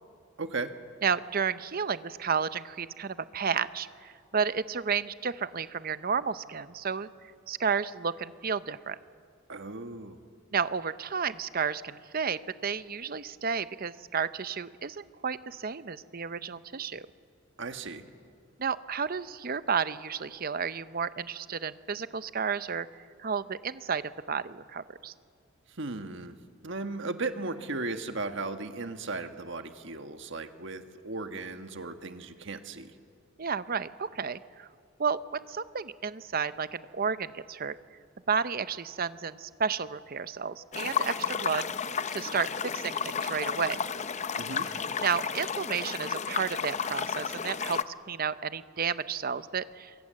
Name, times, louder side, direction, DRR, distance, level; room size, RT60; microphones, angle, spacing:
voice 1, 0.4-0.7 9.5-10.2 17.6-18.0 25.8-26.3 26.6-32.9 44.4-44.7, right 3 dB, 60° right, 7 dB, 1.5 m, -36 dB
voice 2, 1.0-9.0 10.5-17.1 18.6-24.0 24.3-25.1 33.4-34.7 35.0-37.8 38.3-41.6 42.1-43.8 45.0-49.9, right 6 dB, 45° right, 14 dB, 0.7 m, -32 dB
sound 1, 40.7-47.8, left 6 dB, 35° left, 0.6 m, -32 dB
27.5 x 23.0 x 7.6 m, 2.3 s
head